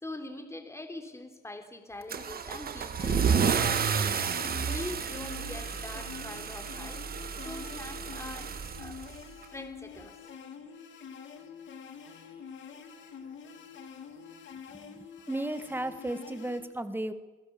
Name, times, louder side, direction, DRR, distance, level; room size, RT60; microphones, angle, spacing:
voice 1, 0.0-4.2 4.6-7.0 7.4-9.0 9.5-10.1, left 2 dB, 15° left, 5 dB, 3.4 m, -43 dB
Car / Engine starting / Accelerating revving vroom, 2.1-9.4, right 7 dB, 50° right, 1.5 m, -31 dB
sound 1, 3.0-16.6, left 6 dB, 70° left, 2.7 m, -46 dB
voice 2, 14.7-17.1, right 1 dB, 10° right, 10 dB, 1.7 m, -35 dB
26.5 x 16.5 x 7.0 m, 1.2 s
cardioid pair, 90°, 20 cm